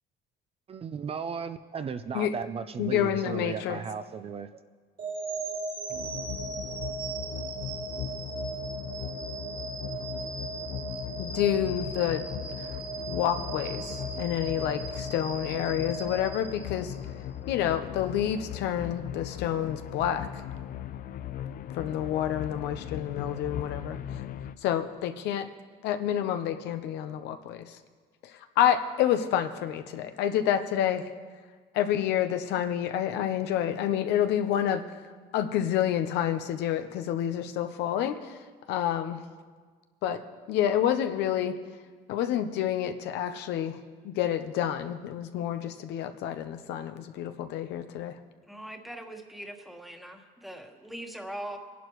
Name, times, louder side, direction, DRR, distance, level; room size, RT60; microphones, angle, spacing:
voice 1, 0.7-4.5, right 6 dB, 35° right, 10 dB, 0.5 m, -35 dB
voice 2, 2.8-3.8 11.2-12.3 13.1-16.9 17.5-20.3 21.7-24.0 24.6-25.5 25.8-27.8 28.2-31.0 31.7-34.8 35.3-38.4 38.7-39.2 40.0-41.6 42.1-43.8 44.0-48.1, left 10 dB, 85° left, 8 dB, 0.8 m, -28 dB
sound 1, 5.0-17.1, right 4 dB, 55° right, 2.7 m, -37 dB
sound 2, 5.9-24.5, left 11 dB, 55° left, 0.5 m, -39 dB
voice 3, 48.5-51.6, right 1 dB, ahead, 3 dB, 1.4 m, -41 dB
22.0 x 11.0 x 3.1 m, 1.5 s
cardioid pair, 110°, 17 cm